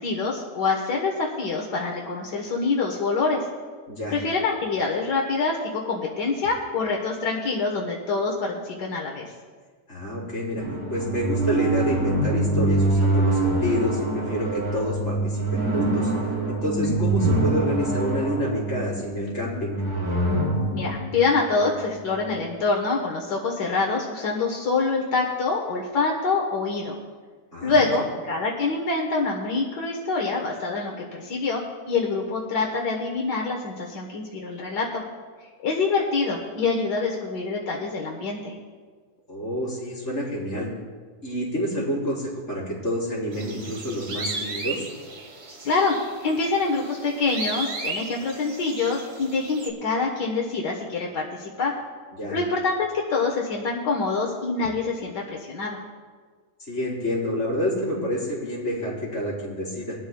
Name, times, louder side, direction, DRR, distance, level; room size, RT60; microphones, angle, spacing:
voice 1, 0.0-3.5 4.1-9.3 16.8-16.9 20.7-27.0 27.6-35.0 35.6-38.6 45.6-51.8 52.3-55.8, left 4 dB, 80° left, -1 dB, 1.9 m, -25 dB
voice 2, 9.9-16.1 16.5-19.8 27.5-27.8 39.3-40.7 41.2-44.9 52.1-52.4 56.7-60.0, equal, 45° left, -6 dB, 5.0 m, -28 dB
sound 1, 10.6-22.2, right 2 dB, 70° right, 4.7 m, -25 dB
sound 2, 43.3-49.7, right 3 dB, 50° right, 1.8 m, -35 dB
21.5 x 13.0 x 2.3 m, 1.5 s
omnidirectional pair, 1.7 m